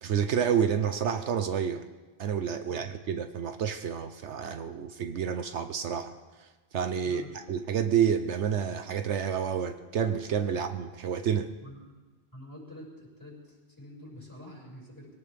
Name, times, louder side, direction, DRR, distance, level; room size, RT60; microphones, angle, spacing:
voice 1, 0.0-1.8 2.2-6.1 6.4-6.5 6.7-11.5, right 8 dB, 75° right, 8 dB, 1.1 m, -29 dB
voice 2, 11.6-11.9 12.3-15.1, left 1 dB, 15° left, -2 dB, 5.7 m, -47 dB
23.5 x 18.0 x 3.5 m, 1.3 s
omnidirectional pair, 1.2 m